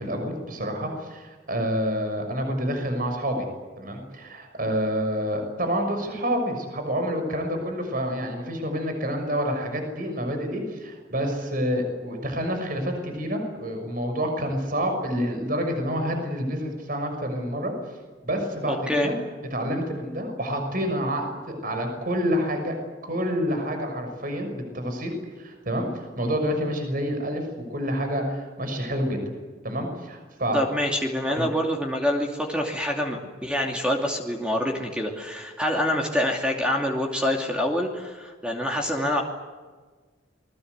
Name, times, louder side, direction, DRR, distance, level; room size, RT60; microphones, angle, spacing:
voice 1, 0.0-3.5 3.8-17.7 18.2-19.2 19.5-22.7 23.0-25.9 26.2-29.2 29.6-30.6 31.3-31.5, equal, 50° right, 5 dB, 6.3 m, -28 dB
voice 2, 18.6-19.1 30.5-39.2, left 1 dB, 5° right, 0 dB, 2.7 m, -26 dB
28.0 x 22.0 x 8.2 m, 1.4 s
head